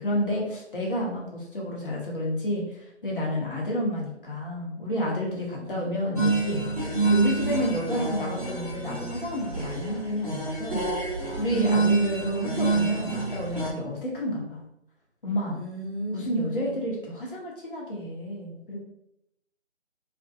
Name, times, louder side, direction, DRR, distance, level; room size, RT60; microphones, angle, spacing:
voice 1, 0.0-14.6 15.2-15.6 16.1-18.8, equal, 45° left, -3 dB, 0.8 m, -30 dB
voice 2, 5.3-5.9 7.8-8.0 11.5-12.4 15.5-16.8, equal, 65° right, -2 dB, 0.9 m, -36 dB
sound 1, 6.2-13.7, right 3 dB, 30° right, 0.8 m, -27 dB
2.5 x 2.1 x 2.6 m, 0.80 s
figure-of-eight pair, 155°, 36 cm